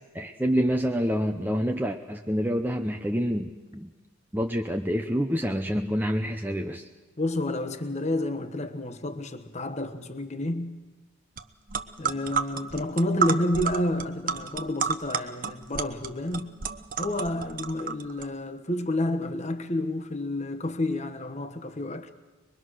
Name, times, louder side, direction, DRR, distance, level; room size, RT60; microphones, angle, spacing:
voice 1, 0.1-3.9 4.3-6.9, equal, 10° right, 0.7 m, -27 dB
voice 2, 7.2-10.9 12.0-16.6 17.0-22.1, left 1 dB, 35° left, 1.2 m, -30 dB
sound 1, 11.4-11.5 11.7-18.3, right 6 dB, 40° right, 0.9 m, -31 dB
23.5 x 22.5 x 6.4 m
head